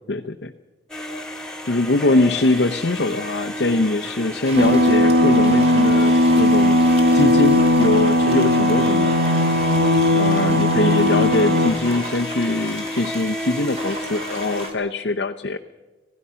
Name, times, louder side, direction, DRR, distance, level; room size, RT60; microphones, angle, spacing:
voice 1, 0.1-0.5 1.6-6.1 6.4-6.8 7.1-9.1 10.1-15.6, left 2 dB, 75° left, 4 dB, 0.8 m, -22 dB
sound 1, 0.9-14.7, left 1 dB, 5° left, 2.1 m, -32 dB
sound 2, 4.4-14.7, right 2 dB, 35° right, 2.7 m, -36 dB
sound 3, 4.6-11.7, left 1 dB, 55° right, 1.4 m, -17 dB
27.0 x 17.0 x 5.7 m, 1.2 s
head